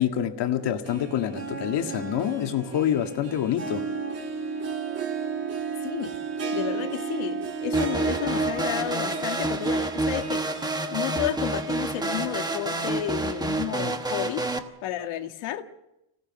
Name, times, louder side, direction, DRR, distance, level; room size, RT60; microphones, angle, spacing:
voice 1, 0.0-3.8, left 10 dB, 55° left, 2.0 m, -26 dB
Harp, 0.6-12.7 13.1-13.2 14.0-14.1, right 5 dB, 30° right, 2.6 m, -34 dB
voice 2, 6.5-10.5 10.9-14.5 14.8-15.6, left 12 dB, 70° left, 1.8 m, -31 dB
sound 1, 7.7-14.6, right 2 dB, 10° right, 1.2 m, -28 dB
26.0 x 17.5 x 7.6 m
cardioid pair, 150°, 49 cm